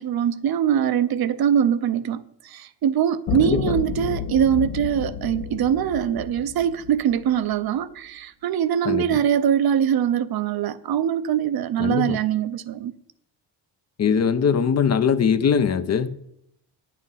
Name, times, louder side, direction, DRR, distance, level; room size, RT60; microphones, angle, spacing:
voice 1, 0.0-12.9, right 9 dB, 55° right, 0.6 m, -23 dB
sound 1, 3.3-7.6, left 8 dB, 70° left, 0.7 m, -31 dB
voice 2, 3.4-3.8 8.8-9.2 11.8-12.2 14.0-16.2, left 7 dB, 40° left, 0.5 m, -21 dB
9.7 x 7.6 x 5.6 m
cardioid pair, 145°, 44 cm